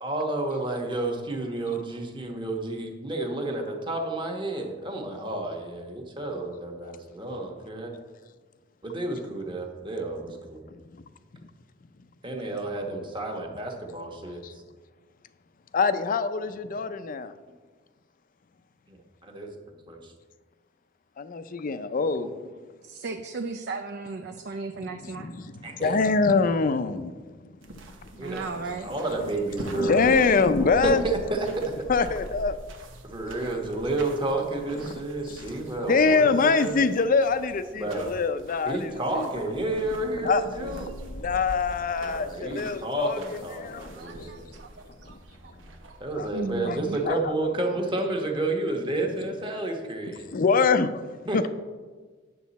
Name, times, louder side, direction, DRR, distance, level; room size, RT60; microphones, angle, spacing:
voice 1, 0.0-7.9 8.8-10.7 12.2-14.4 18.9-19.5 19.9-20.1 25.6-26.0 28.2-30.2 30.6-31.6 33.0-36.9 37.8-38.1 38.6-40.9 42.0-44.5 46.0-50.3 51.3-51.5, right 2 dB, 25° right, 2 dB, 1.2 m, -31 dB
voice 2, 15.7-17.3 21.2-22.3 25.1-27.1 29.6-31.1 31.9-32.6 34.8-35.0 35.3-35.5 35.8-39.3 40.2-43.2 43.5-44.3 45.0-45.1 46.1-46.3 46.6-46.8 47.1-47.3 50.3-51.5, left 4 dB, 45° left, 12 dB, 0.5 m, -25 dB
voice 3, 22.8-25.3 28.1-29.0 44.0-45.2 45.4-45.5 45.9-46.0 46.3-47.1, right 3 dB, 60° right, 5 dB, 0.5 m, -36 dB
sound 1, 27.6-47.2, right 1 dB, 85° right, 1.0 m, -44 dB
9.3 x 6.7 x 4.1 m, 1.4 s
head